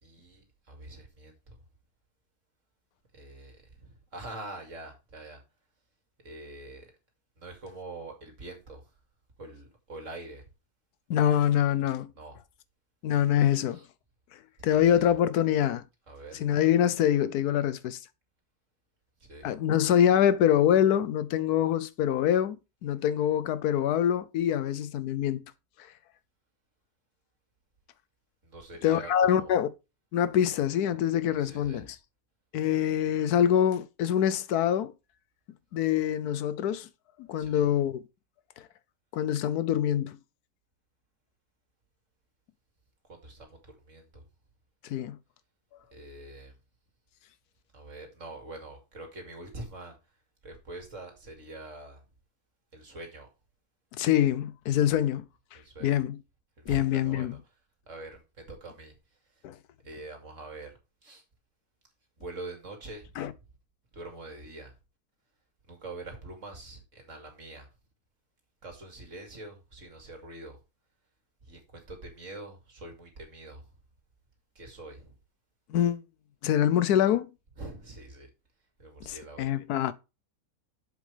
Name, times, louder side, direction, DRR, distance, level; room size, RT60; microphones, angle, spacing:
voice 1, 0.0-1.6 3.1-5.4 6.2-6.9 7.4-8.8 9.4-10.4 12.2-12.4 13.7-13.9 14.6-15.1 16.1-16.5 19.2-19.5 28.4-29.5 31.4-31.9 37.4-37.6 43.1-44.2 45.9-46.5 47.7-50.0 50.4-52.0 52.7-53.3 55.5-55.9 56.6-57.3 57.9-58.9 59.8-60.7 61.0-61.2 62.2-63.3 63.9-64.7 65.7-67.7 68.6-70.6 71.4-73.6 74.6-75.2 77.6-78.3 78.8-79.5, right 2 dB, 50° right, 2.6 m, -44 dB
voice 2, 11.1-12.1 13.0-13.8 14.6-15.8 16.3-18.0 19.4-25.4 28.8-29.7 30.1-32.0 32.5-34.9 35.7-36.9 37.3-38.0 39.1-40.2 44.9-45.2 54.0-55.2 55.8-56.2 56.7-57.4 59.4-59.5 63.2-63.3 75.7-76.0 76.4-77.3 79.0-79.9, left 10 dB, 80° left, 1.1 m, -25 dB
7.4 x 7.3 x 3.3 m
omnidirectional pair, 1.7 m